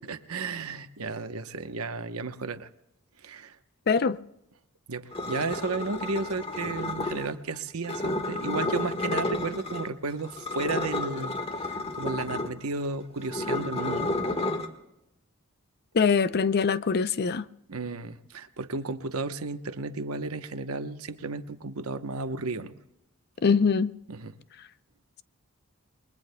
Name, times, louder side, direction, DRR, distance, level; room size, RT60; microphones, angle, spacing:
voice 1, 0.1-2.7 3.2-3.6 4.9-11.3 11.9-14.2 17.7-22.8 24.1-24.4, right 3 dB, 85° right, 1.0 m, -33 dB
voice 2, 3.9-4.2 15.9-17.4 23.4-23.9, left 5 dB, 50° left, 0.5 m, -23 dB
sound 1, 5.1-7.3 7.8-9.9 10.2-14.7, left 2 dB, 30° left, 1.5 m, -31 dB
29.0 x 22.0 x 2.2 m
head